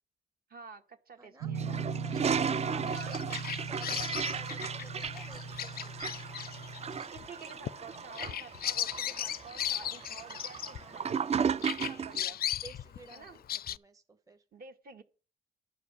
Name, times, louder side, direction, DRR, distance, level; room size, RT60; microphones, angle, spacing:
voice 1, 0.5-1.8 2.6-3.2 7.1-11.2 11.9-12.4 13.1-13.4 14.5-15.0, right 4 dB, 50° right, 1.7 m, -49 dB
voice 2, 1.2-1.5 2.0-5.9 9.6-10.2 10.7-11.3 11.8-14.4, right 2 dB, 15° right, 1.0 m, -54 dB
sound 1, 1.4-7.0, right 4 dB, 85° right, 1.2 m, -39 dB
Toilet flush, 1.6-12.2, right 6 dB, 35° right, 0.4 m, -35 dB
Bird vocalization bird call bird song, 2.9-11.3 11.6-13.8, left 11 dB, 50° left, 0.4 m, -37 dB
11.5 x 4.9 x 8.1 m
cardioid pair, 90°, 20 cm